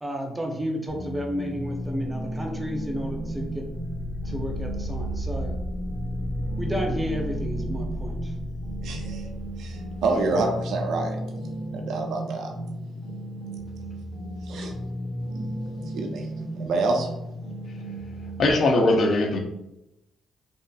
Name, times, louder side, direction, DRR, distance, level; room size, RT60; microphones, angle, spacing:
voice 1, 0.0-3.6 4.2-5.5 6.6-8.4, equal, 10° right, 1 dB, 0.5 m, -32 dB
sound 1, 0.9-18.5, right 1 dB, 80° left, 0.9 m, -34 dB
sound 2, 1.5-10.3, equal, 30° left, 1.1 m, -34 dB
voice 2, 8.8-9.2 9.6-11.2 11.7-12.5 14.5-14.7 15.4-15.6 15.9-16.3 16.6-17.1, right 3 dB, 75° right, 2 dB, 0.4 m, -27 dB
voice 3, 18.4-19.4, left 2 dB, 55° left, 3 dB, 0.5 m, -20 dB
2.6 x 2.5 x 2.2 m, 0.85 s
cardioid pair, 90°, 0 cm